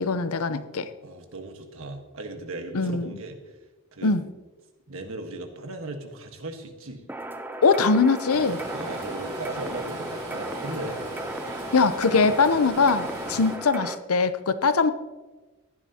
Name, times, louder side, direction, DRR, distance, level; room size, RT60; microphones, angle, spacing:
voice 1, 0.0-0.9 2.7-3.1 4.0-4.2 7.6-8.6 11.7-14.9, left 4 dB, 75° left, 12 dB, 0.7 m, -22 dB
voice 2, 1.0-3.4 3.9-4.1 4.9-7.0 8.7-11.0 13.3-13.5, right 2 dB, 65° right, 5 dB, 1.5 m, -37 dB
sound 1, 7.1-14.0, right 1 dB, 10° right, 0.5 m, -36 dB
Stream, 8.3-13.6, right 1 dB, 35° right, 3.3 m, -38 dB
15.5 x 11.5 x 2.9 m, 1.2 s
head